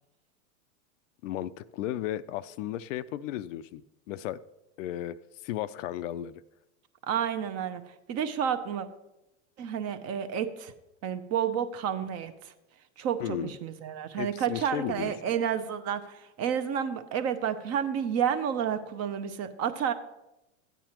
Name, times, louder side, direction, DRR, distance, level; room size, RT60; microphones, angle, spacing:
voice 1, 1.2-3.8 4.1-4.4 4.8-6.4 13.2-13.6 14.2-15.1, left 12 dB, 65° left, 14 dB, 0.5 m, -34 dB
voice 2, 7.1-7.8 8.1-8.9 9.6-10.7 11.0-12.5 13.0-19.9, right 8 dB, 40° right, 9 dB, 0.8 m, -30 dB
13.0 x 9.2 x 3.0 m, 0.94 s
hypercardioid pair, 110°, 42 cm